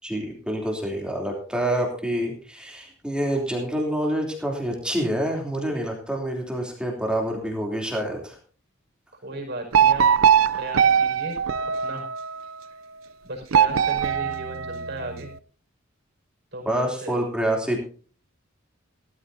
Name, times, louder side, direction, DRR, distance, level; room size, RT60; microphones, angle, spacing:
voice 1, 0.0-8.4 16.6-17.8, right 1 dB, 5° right, 0 dB, 3.1 m, -27 dB
voice 2, 9.2-10.1 10.5-11.4 11.8-12.1 13.2-15.3 16.5-17.2, right 1 dB, 55° right, 2 dB, 5.4 m, -35 dB
sound 1, 9.7-12.4 13.5-15.3, right 7 dB, 90° right, 0.6 m, -21 dB
17.0 x 14.0 x 2.7 m, 0.41 s
head